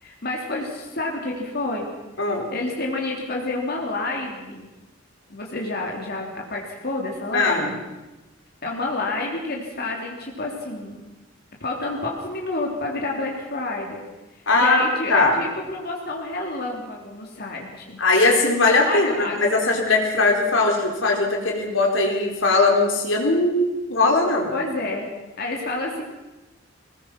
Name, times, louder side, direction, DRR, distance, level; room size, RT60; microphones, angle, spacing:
voice 1, 0.0-1.9 2.2-4.7 5.3-7.8 8.6-11.0 11.6-14.0 14.6-18.0 18.9-19.4 24.5-25.0 25.4-26.0, left 2 dB, 50° left, 0 dB, 3.3 m, -29 dB
voice 2, 2.2-2.5 7.3-7.7 14.5-15.4 18.0-24.5, left 3 dB, 70° left, 1 dB, 4.1 m, -20 dB
21.5 x 20.0 x 6.1 m, 1.1 s
head